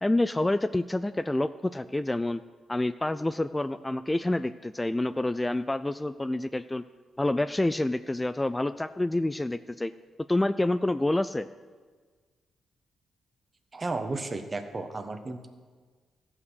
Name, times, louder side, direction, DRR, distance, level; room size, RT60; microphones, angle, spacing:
voice 1, 0.0-2.4 2.7-6.8 7.2-9.9 10.3-11.5, left 1 dB, 15° left, 12 dB, 0.3 m, -28 dB
voice 2, 13.7-15.5, right 3 dB, 35° right, 7 dB, 1.2 m, -33 dB
14.0 x 5.9 x 6.3 m, 1.5 s
supercardioid pair, 55°, 0 cm